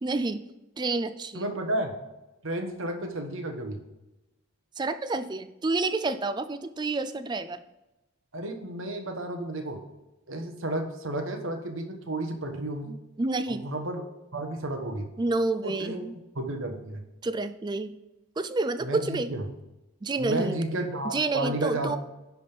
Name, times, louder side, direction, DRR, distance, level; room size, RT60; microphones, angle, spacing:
voice 1, 0.0-0.4 0.8-1.5 4.8-7.6 13.2-13.7 15.2-16.1 17.2-17.9 18.4-19.3 20.0-20.6 21.1-22.0, right 3 dB, 20° right, 11 dB, 0.3 m, -29 dB
voice 2, 1.3-1.9 2.4-3.8 8.3-9.8 10.3-13.0 13.5-14.0 14.3-15.1 15.6-16.0 16.3-17.0 18.8-19.5 20.2-22.0, right 1 dB, 60° right, 4 dB, 1.2 m, -32 dB
10.5 x 3.5 x 5.8 m, 0.97 s
head